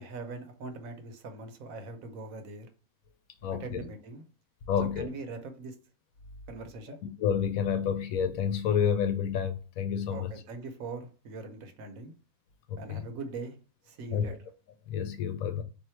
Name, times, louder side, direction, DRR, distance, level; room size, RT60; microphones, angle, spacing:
voice 1, 0.0-2.7 3.5-4.2 4.8-5.8 6.5-7.0 10.1-12.1 12.8-13.6 13.8-14.4, right 3 dB, 70° right, 1.1 m, -41 dB
voice 2, 3.4-3.9 4.7-5.1 7.2-10.3 12.7-13.0 14.1-14.2 14.9-15.6, left 8 dB, 75° left, 1.0 m, -29 dB
3.7 x 2.7 x 4.4 m
omnidirectional pair, 1.5 m